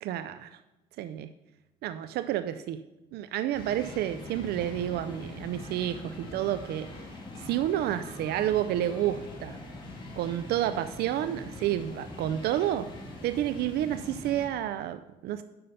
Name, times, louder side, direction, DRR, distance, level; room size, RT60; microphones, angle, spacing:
voice 1, 0.0-0.5 1.0-1.3 1.8-2.8 3.1-6.9 7.4-9.5 10.2-12.9 13.2-15.4, right 12 dB, 70° right, 12 dB, 0.4 m, -30 dB
sound 1, 3.5-14.5, left 2 dB, 30° left, 2.3 m, -43 dB
9.3 x 5.5 x 5.5 m, 1.0 s
cardioid pair, 110°, 17 cm